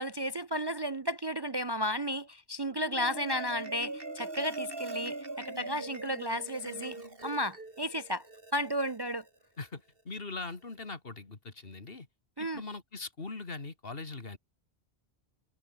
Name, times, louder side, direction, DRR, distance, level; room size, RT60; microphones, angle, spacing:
voice 1, 0.0-7.0 7.2-8.2 8.5-9.2 12.4-12.6, equal, 30° right, 0.6 m, -33 dB
Marimba xylophone, 2.7-9.3, right 2 dB, 60° right, 3.7 m, -42 dB
voice 2, 9.6-12.1 12.4-14.4, left 3 dB, 60° left, 2.6 m, -41 dB
omnidirectional pair, 1.1 m